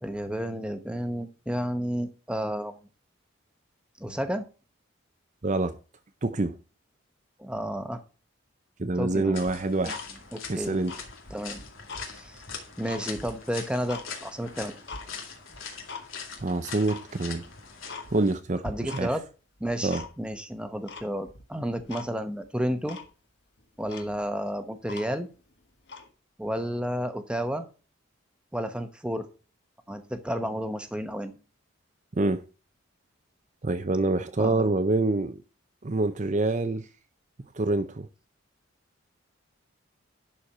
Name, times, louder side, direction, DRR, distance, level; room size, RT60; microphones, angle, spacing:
voice 1, 0.0-2.7 4.0-4.5 7.4-8.0 9.0-9.4 10.3-10.8 11.3-11.6 12.1-12.4 12.8-14.7 18.6-19.2 19.6-23.0 23.8-25.3 26.4-27.7 28.5-29.3 29.9-31.3 34.4-34.7, equal, 5° right, 0.9 m, -31 dB
voice 2, 5.4-5.7 6.2-6.6 8.8-10.0 10.5-11.0 16.4-17.4 18.1-19.1 19.8-20.0 32.2-32.4 33.6-35.4 35.8-36.9 37.5-38.1, right 2 dB, 35° right, 0.6 m, -26 dB
sound 1, 9.3-18.3, left 5 dB, 80° left, 2.1 m, -42 dB
Tick-tock, 9.4-10.5 10.8-12.1 12.5-14.1 14.5-15.1 15.5-16.1 16.3-16.4 16.8-17.1 17.5-17.6 17.9-18.4 18.6-19.3 19.6-20.4 20.9-21.4 21.9-22.1 22.4-22.5 22.9-23.1 23.6-23.7 23.9-25.4 25.8-26.1, left 4 dB, 55° left, 1.6 m, -42 dB
11.5 x 4.5 x 5.4 m
head